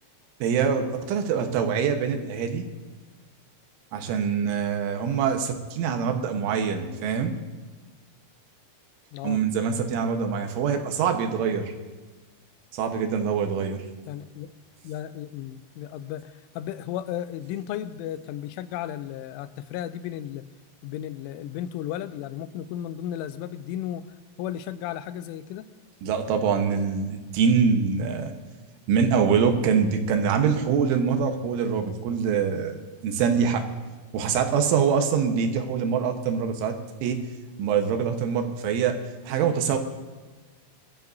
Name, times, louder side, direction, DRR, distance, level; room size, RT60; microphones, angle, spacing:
voice 1, 0.4-2.7 3.9-7.4 9.2-11.7 12.7-13.8 26.0-28.3 28.9-32.8 33.0-33.7 34.1-37.2 37.6-39.0 39.3-39.8, right 6 dB, 80° right, 5 dB, 3.6 m, -24 dB
voice 2, 14.1-14.5 14.8-20.5 20.8-24.1 24.4-25.7, left 11 dB, 85° left, 12 dB, 3.2 m, -34 dB
23.5 x 13.5 x 2.7 m, 1.3 s
omnidirectional pair, 5.5 m